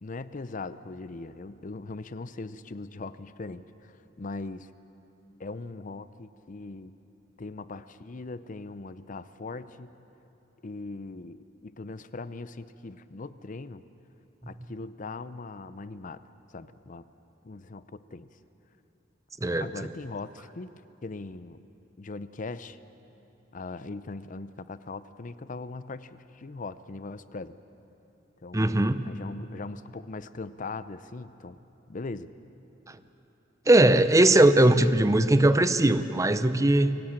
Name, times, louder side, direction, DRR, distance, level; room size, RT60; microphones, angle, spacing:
voice 1, 0.0-4.7 5.4-6.9 7.4-9.9 10.6-13.8 14.5-16.2 16.5-17.0 17.4-18.3 19.6-20.7 21.0-21.6 22.0-22.8 23.5-27.6 28.4-31.6 31.9-32.3, left 3 dB, 45° left, 14 dB, 0.6 m, -40 dB
voice 2, 28.5-29.1 32.9-33.0 33.7-37.0, right 1 dB, 15° right, 12 dB, 0.6 m, -20 dB
23.5 x 17.5 x 8.9 m, 3.0 s
head